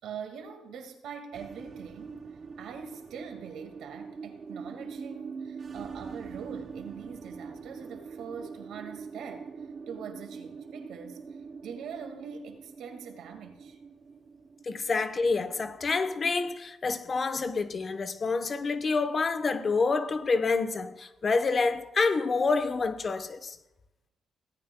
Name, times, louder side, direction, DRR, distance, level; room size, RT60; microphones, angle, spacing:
voice 1, 0.0-2.3 2.6-9.5 9.9-11.3 11.6-13.8, right 7 dB, 80° right, 1.9 m, -43 dB
sound 1, 1.3-16.0, right 5 dB, 40° right, 0.6 m, -43 dB
voice 2, 14.7-23.6, left 4 dB, 40° left, 0.9 m, -28 dB
17.0 x 14.0 x 2.2 m
cardioid pair, 90°, 0 cm